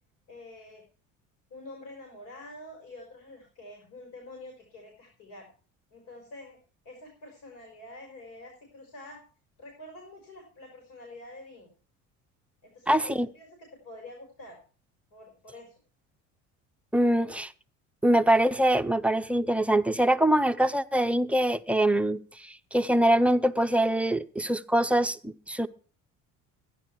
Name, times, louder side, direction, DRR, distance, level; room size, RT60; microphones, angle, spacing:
voice 1, 0.3-0.8 1.5-5.5 5.9-6.6 6.8-9.2 9.6-11.7 12.6-14.6 15.1-15.8 17.1-17.4, left 1 dB, 85° left, 4.5 m, -47 dB
voice 2, 12.9-13.3 16.9-17.5 18.0-25.7, right 1 dB, 5° right, 0.5 m, -24 dB
12.0 x 10.5 x 4.5 m
cardioid pair, 125°, 32 cm